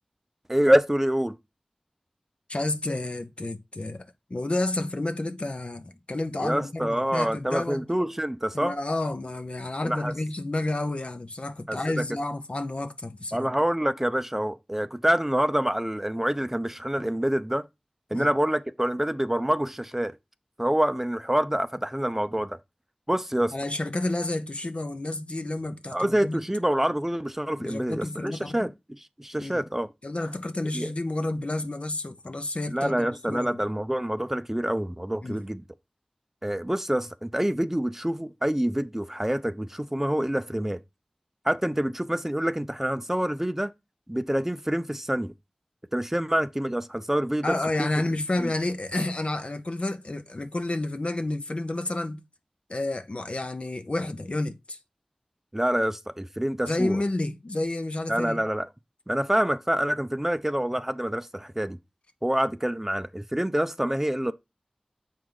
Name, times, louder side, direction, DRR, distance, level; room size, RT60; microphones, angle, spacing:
voice 1, 0.5-1.4 6.4-8.7 9.8-10.1 11.7-12.0 13.3-17.6 18.1-20.1 20.6-22.6 23.1-23.5 25.9-29.9 30.7-30.9 32.7-35.6 36.4-40.8 41.4-43.7 44.1-45.3 45.9-47.5 47.8-47.9 48.4-48.5 55.5-57.0 58.1-58.7 59.1-61.8 62.2-64.3, right 1 dB, 15° right, 0.6 m, -26 dB
voice 2, 2.5-7.8 8.5-13.5 18.1-18.3 23.5-26.5 27.6-28.7 29.4-29.6 30.0-33.6 35.2-35.4 47.4-52.2 52.7-54.8 56.6-58.4, left 2 dB, 55° left, 0.8 m, -30 dB
7.3 x 4.7 x 3.9 m
wide cardioid pair, 50°, 2 cm